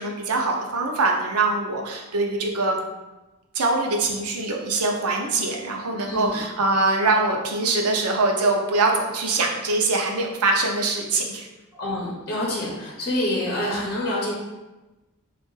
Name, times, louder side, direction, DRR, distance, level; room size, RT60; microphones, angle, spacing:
voice 1, 0.0-2.8 3.5-11.5, right 3 dB, 80° right, 1 dB, 0.6 m, -23 dB
voice 2, 5.9-6.4 11.7-14.3, left 1 dB, 45° left, -4 dB, 0.9 m, -27 dB
3.5 x 2.5 x 3.9 m, 1.1 s
head